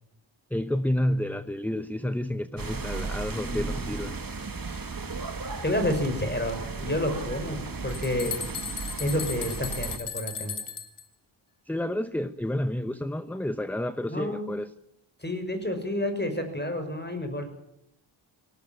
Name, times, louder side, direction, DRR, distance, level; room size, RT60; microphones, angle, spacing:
voice 1, 0.5-4.2 11.7-14.7, left 1 dB, 5° left, 12 dB, 0.8 m, -30 dB
sound 1, 2.6-10.0, right 4 dB, 45° right, 2.2 m, -35 dB
voice 2, 5.6-8.4 9.0-10.6 14.1-14.6 15.2-17.5, left 1 dB, 20° left, 7 dB, 6.0 m, -29 dB
sound 2, 7.5-11.0, left 6 dB, 85° left, 2.5 m, -36 dB
19.5 x 18.0 x 9.1 m, 0.79 s
wide cardioid pair, 75°, 48 cm